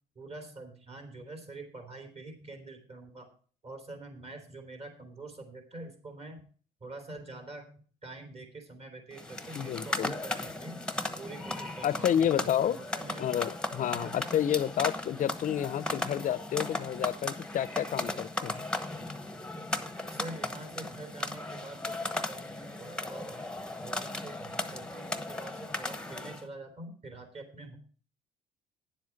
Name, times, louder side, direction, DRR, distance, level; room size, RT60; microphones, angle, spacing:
voice 1, 0.1-3.3 3.6-6.4 6.8-7.7 8.0-10.8 11.2-13.3 13.9-14.2 20.1-23.3 23.6-27.8, right 2 dB, 40° right, 4 dB, 3.2 m, -45 dB
sound 1, 9.1-26.5, left 2 dB, 5° left, 1.0 m, -36 dB
voice 2, 9.5-10.1 11.8-12.8 13.2-18.6, left 10 dB, 50° left, 17 dB, 0.7 m, -30 dB
10.0 x 7.5 x 5.9 m, 0.42 s
cardioid pair, 110°, 17 cm